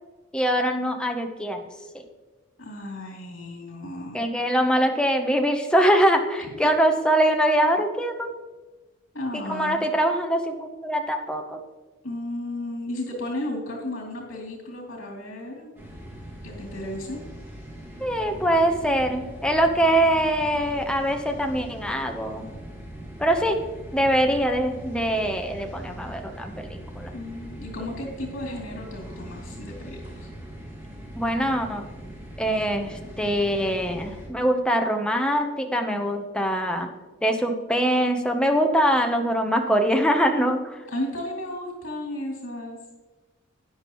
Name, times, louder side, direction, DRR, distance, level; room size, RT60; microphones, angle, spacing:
voice 1, 0.3-1.6 1.9-2.0 4.1-8.3 9.5-11.6 18.0-22.4 23.2-23.6 23.9-27.1 31.2-31.9 32.4-36.9 37.2-40.8, right 1 dB, 5° left, 4 dB, 0.9 m, -23 dB
voice 2, 2.6-4.3 6.4-6.5 9.1-9.9 12.0-15.7 16.4-17.2 27.1-30.3 40.9-42.8, left 1 dB, 75° left, -1 dB, 2.8 m, -34 dB
sound 1, 15.8-34.3, right 1 dB, 10° right, 2.1 m, -41 dB
12.5 x 9.6 x 3.1 m, 1.2 s
head